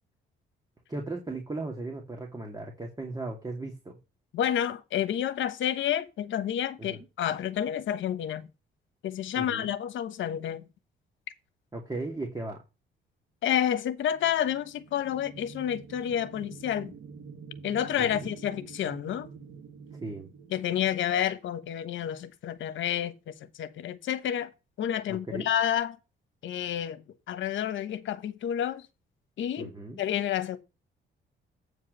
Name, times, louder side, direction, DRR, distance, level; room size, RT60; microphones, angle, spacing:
voice 1, 0.9-4.0 6.8-7.0 9.4-9.7 11.7-12.6 18.0-18.3 20.0-20.3 25.1-25.5 29.6-30.0, right 2 dB, 20° right, 2.3 m, -37 dB
voice 2, 4.3-8.5 9.0-10.7 13.4-16.9 17.6-19.3 20.5-24.5 24.8-26.0 26.4-28.9 29.4-29.7 30.0-30.6, left 10 dB, 75° left, 1.2 m, -29 dB
sound 1, 14.0-21.7, right 5 dB, 70° right, 2.0 m, -47 dB
8.4 x 4.8 x 6.7 m
cardioid pair, 90°, 20 cm